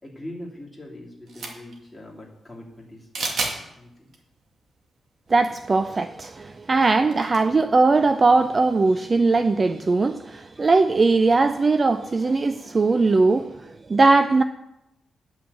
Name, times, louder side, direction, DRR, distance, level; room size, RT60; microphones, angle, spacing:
voice 1, 0.0-4.1, left 1 dB, 5° left, 2.8 m, -42 dB
sound 1, 1.3-1.8 3.1-3.6 4.1-4.2 5.4-5.5 5.7-5.8 7.1-7.5, right 3 dB, 60° right, 2.2 m, -29 dB
voice 2, 5.3-14.4, right 3 dB, 25° right, 0.4 m, -20 dB
10.5 x 6.0 x 8.4 m
wide cardioid pair, 165°, 0 cm